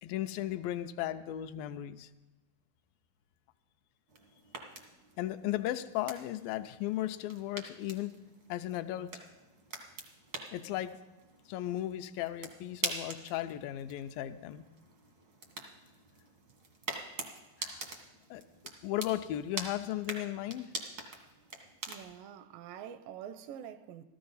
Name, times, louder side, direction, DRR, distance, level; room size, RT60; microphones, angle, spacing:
voice 1, 0.0-2.1 5.2-8.2 8.5-9.1 10.5-11.0 11.5-14.6 17.6-17.8 18.3-18.4 18.8-20.7, left 13 dB, 85° left, 2.3 m, -36 dB
sound 1, 4.1-22.2, right 3 dB, 70° right, 0.9 m, -45 dB
voice 2, 21.9-24.0, right 9 dB, 85° right, 2.3 m, -46 dB
14.5 x 13.5 x 4.0 m
omnidirectional pair, 4.0 m